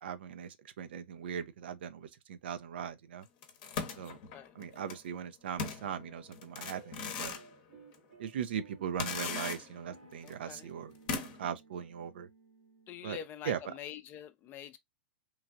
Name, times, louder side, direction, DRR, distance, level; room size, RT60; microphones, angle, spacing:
voice 1, 0.0-3.2 4.0-4.2 4.6-7.4 8.2-12.3 13.0-13.2 13.5-13.7, right 8 dB, 70° right, 0.5 m, -39 dB
sound 1, 3.4-5.0 5.6-7.5 7.9-8.0 9.0-9.9 10.3-10.4 11.1-11.5, left 5 dB, 50° left, 0.8 m, -38 dB
voice 2, 4.1-4.5 10.2-10.7 12.9-14.8, left 10 dB, 35° left, 0.5 m, -46 dB
sound 2, 6.7-13.2, right 3 dB, 85° right, 1.2 m, -58 dB
3.1 x 2.3 x 2.5 m
hypercardioid pair, 105°, 6 cm